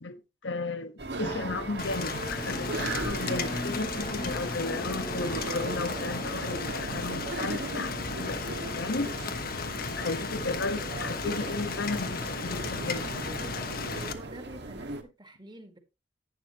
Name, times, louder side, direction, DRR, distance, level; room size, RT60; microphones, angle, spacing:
voice 1, 0.4-9.1 9.9-13.1, left 3 dB, 80° left, 1.2 m, -34 dB
sound 1, 1.0-15.0, right 2 dB, 65° right, 1.6 m, -38 dB
Drum, 1.2-10.5, left 1 dB, 20° left, 1.2 m, -42 dB
Rain, 1.8-14.1, left 5 dB, 55° left, 1.1 m, -35 dB
voice 2, 14.0-15.8, right 1 dB, 25° right, 2.0 m, -48 dB
11.0 x 9.6 x 3.0 m
head